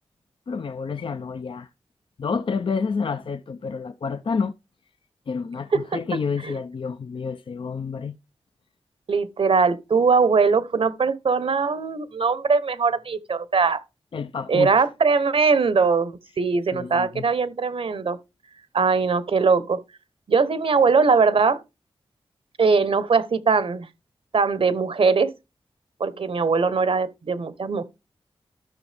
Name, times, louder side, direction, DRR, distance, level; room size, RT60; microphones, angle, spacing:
voice 1, 0.5-1.7 2.2-4.5 5.3-8.2 14.1-14.9 16.7-17.2, left 5 dB, 60° left, 0.5 m, -29 dB
voice 2, 5.7-6.5 9.1-13.8 14.5-18.2 18.7-19.8 20.3-21.6 22.6-23.9 24.3-25.3 26.0-27.8, right 5 dB, 70° right, 1.0 m, -21 dB
13.0 x 6.2 x 3.4 m
wide cardioid pair, 85°, 10 cm